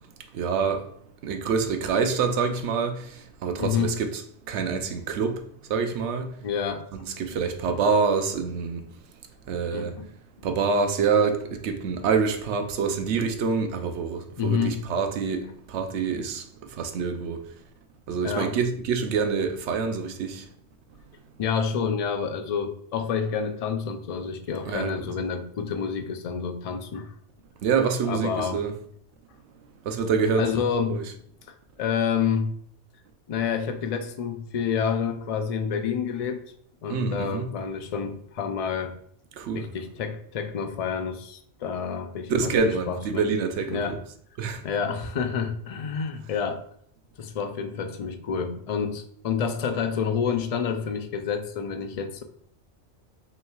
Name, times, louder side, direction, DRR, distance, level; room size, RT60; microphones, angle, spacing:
voice 1, 0.3-0.9 1.2-4.2 4.5-5.4 5.7-6.3 6.9-8.8 9.5-9.9 10.4-16.4 16.8-17.4 18.1-20.4 24.7-25.0 27.6-28.7 29.9-30.5 30.9-31.0 36.9-37.4 39.4-39.7 42.3-44.0 44.4-44.6, right 5 dB, 80° right, 0.9 m, -26 dB
voice 2, 3.6-4.0 6.4-6.8 9.7-10.1 14.4-14.8 18.2-18.5 21.4-27.1 28.1-28.6 30.4-31.0 31.8-32.5 33.3-36.4 36.8-38.9 39.5-43.2 43.7-44.0 44.6-46.6 47.2-52.2, left 6 dB, 70° left, 0.3 m, -28 dB
5.4 x 3.1 x 2.3 m
omnidirectional pair, 1.2 m